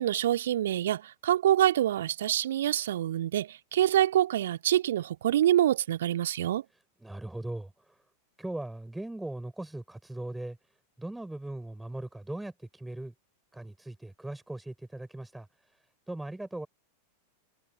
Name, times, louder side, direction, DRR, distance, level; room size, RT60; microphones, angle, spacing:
voice 1, 0.0-6.6, right 12 dB, 60° right, 2.0 m, -26 dB
voice 2, 7.0-8.0 8.4-10.6 11.0-13.1 13.5-15.5 16.1-16.7, right 1 dB, 5° right, 6.1 m, -39 dB
figure-of-eight pair, 90°, 0 cm